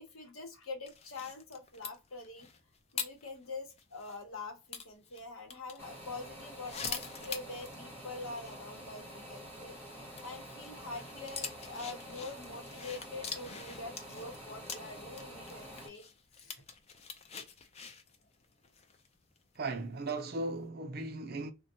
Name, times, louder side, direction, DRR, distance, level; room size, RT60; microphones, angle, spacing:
voice 1, 0.0-2.5 2.9-9.7 10.2-16.0 16.4-16.5, left 3 dB, 70° left, 0.9 m, -45 dB
sound 1, 0.9-4.2 4.7-5.8 6.4-7.9 8.1-8.2 8.5-8.6 10.1-19.6 20.1-20.4, left 6 dB, 30° left, 0.3 m, -44 dB
sound 2, 5.8-15.9, equal, 10° left, 0.8 m, -48 dB
voice 2, 19.6-21.5, right 2 dB, 45° right, 0.5 m, -37 dB
3.4 x 2.2 x 2.7 m
head